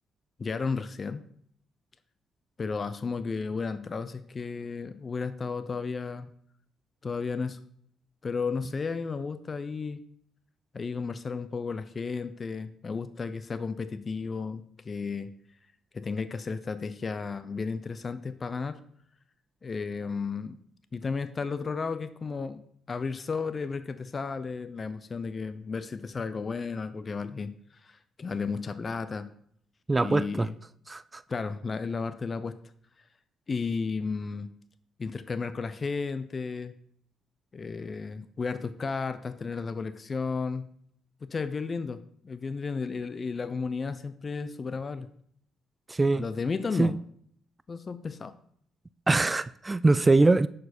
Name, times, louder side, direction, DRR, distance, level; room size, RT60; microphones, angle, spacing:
voice 1, 0.4-1.2 2.6-6.3 7.0-7.6 8.2-10.0 10.7-15.3 15.9-18.8 19.6-20.6 20.9-22.6 22.9-27.5 27.8-29.3 30.0-30.5 31.3-32.6 33.5-34.5 35.0-36.7 37.5-40.7 41.2-42.0 42.2-45.1 46.2-46.9 47.7-48.3, left 4 dB, 40° left, 0.6 m, -33 dB
voice 2, 29.9-30.5 30.9-31.2 45.9-46.2 46.8-47.0 49.1-50.5, right 3 dB, 25° right, 0.3 m, -23 dB
11.0 x 4.7 x 4.3 m
supercardioid pair, 65°, 0 cm